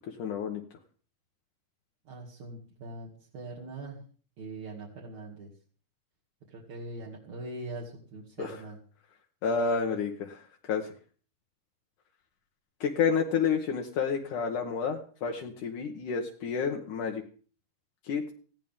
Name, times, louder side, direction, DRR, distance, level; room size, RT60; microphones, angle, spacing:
voice 1, 0.2-0.6 8.4-8.6 9.4-10.9 12.8-17.2 18.1-18.3, left 6 dB, 70° left, 1 dB, 2.7 m, -30 dB
voice 2, 2.1-4.0 4.4-5.5 6.5-8.8, right 2 dB, 60° right, -4 dB, 3.7 m, -42 dB
19.5 x 16.0 x 3.7 m, 0.42 s
omnidirectional pair, 3.8 m